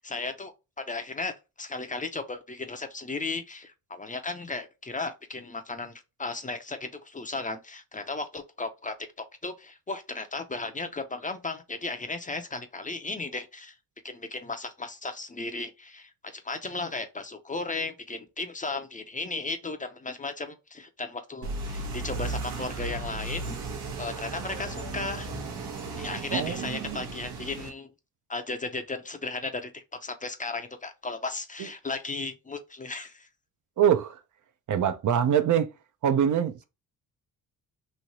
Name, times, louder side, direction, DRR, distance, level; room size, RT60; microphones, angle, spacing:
voice 1, 0.0-5.9 6.2-13.7 14.0-23.6 24.0-25.3 25.9-27.9 28.3-33.3, left 3 dB, 20° left, 0.5 m, -35 dB
sound 1, 21.4-27.7, right 3 dB, 85° right, 0.9 m, -35 dB
voice 2, 33.8-34.2 34.7-35.7 36.0-36.6, right 9 dB, 55° right, 0.5 m, -24 dB
3.1 x 2.8 x 2.6 m
cardioid pair, 75°, 38 cm